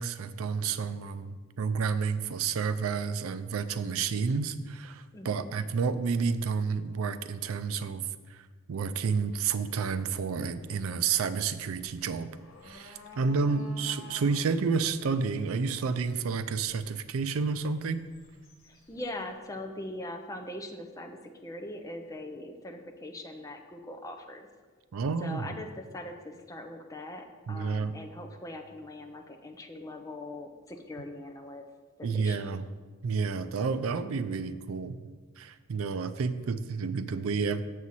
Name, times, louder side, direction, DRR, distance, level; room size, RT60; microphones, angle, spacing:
voice 1, 0.0-8.4 8.7-12.3 12.6-18.0 24.9-25.6 27.5-27.9 32.0-32.7 33.0-35.1 35.4-37.6, right 5 dB, 85° right, 12 dB, 0.4 m, -30 dB
voice 2, 5.1-5.5 18.9-24.5 25.2-31.7 32.0-32.6, left 1 dB, 15° left, 4 dB, 0.5 m, -41 dB
sound 1, 8.9-19.3, left 2 dB, 80° left, 1.4 m, -54 dB
7.1 x 6.3 x 4.1 m, 1.4 s
head